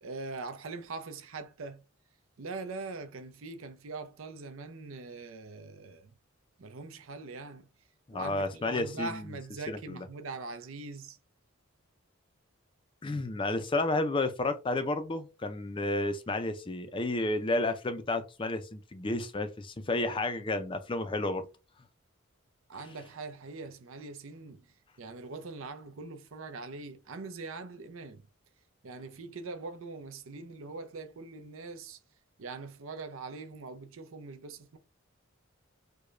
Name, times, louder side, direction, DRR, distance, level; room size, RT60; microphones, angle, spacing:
voice 1, 0.0-1.8 2.4-6.1 6.6-7.7 8.1-11.2 22.7-24.6 25.0-28.2 28.8-32.0 32.4-34.8, right 3 dB, 75° right, 0.6 m, -42 dB
voice 2, 8.1-9.4 9.7-10.1 13.0-21.5, left 2 dB, 25° left, 0.4 m, -31 dB
4.7 x 2.2 x 2.5 m
head